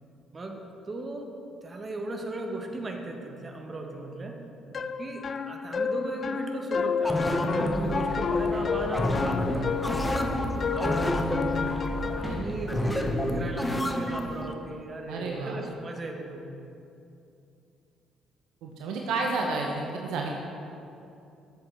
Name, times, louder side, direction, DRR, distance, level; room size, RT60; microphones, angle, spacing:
voice 1, 0.3-1.3 1.6-4.4 5.0-10.4 10.7-11.3 12.1-16.5, right 2 dB, 35° right, 3 dB, 1.2 m, -36 dB
sound 1, 4.7-12.4, left 6 dB, 45° left, 0.4 m, -31 dB
sound 2, 7.0-14.5, left 1 dB, 15° left, 0.8 m, -30 dB
sound 3, 7.7-13.4, right 1 dB, 10° right, 2.1 m, -36 dB
voice 2, 15.1-15.6 18.6-20.3, right 3 dB, 65° right, 0 dB, 0.8 m, -31 dB
11.5 x 7.7 x 3.4 m, 2.7 s
hypercardioid pair, 45°, 0 cm